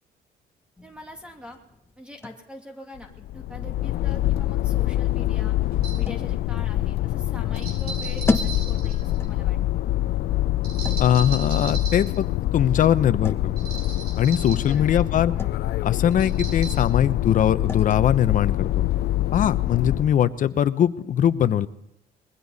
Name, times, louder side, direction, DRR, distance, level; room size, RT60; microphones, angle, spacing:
sound 1, 0.8-20.3, left 3 dB, 15° left, 1.2 m, -38 dB
voice 1, 0.8-1.6 2.0-5.6 5.9-9.9 14.6-15.0, left 1 dB, 5° right, 2 dB, 2.7 m, -43 dB
sound 2, 3.0-20.3, left 15 dB, 70° left, 0.6 m, -25 dB
sound 3, 4.8-4.9 5.7-6.0 7.5-9.4 10.6-12.2 13.6-14.7 16.1-16.8, right 4 dB, 65° right, 7.7 m, -37 dB
voice 2, 11.0-12.3 12.5-13.5 14.2-15.3 15.8-18.8 19.3-21.7, left 10 dB, 50° left, 13 dB, 0.9 m, -21 dB
21.5 x 16.0 x 4.2 m, 0.85 s
cardioid pair, 110°, 17 cm